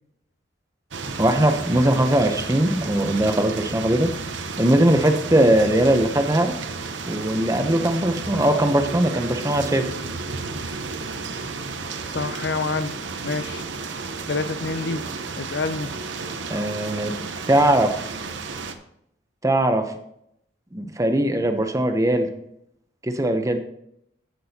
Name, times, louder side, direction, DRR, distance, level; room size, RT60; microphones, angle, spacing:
sound 1, 0.9-18.7, right 4 dB, 75° right, 0.8 m, -32 dB
voice 1, 1.2-4.1 4.6-6.6 7.1-9.9 16.5-17.1 17.5-18.0 19.4-19.9 20.7-22.3 23.0-23.6, right 1 dB, 15° right, 6 dB, 0.7 m, -20 dB
voice 2, 12.1-13.0 13.2-13.6 14.3-15.0 15.4-15.9, left 3 dB, 60° left, 13 dB, 0.6 m, -27 dB
14.5 x 6.1 x 2.8 m, 0.74 s
head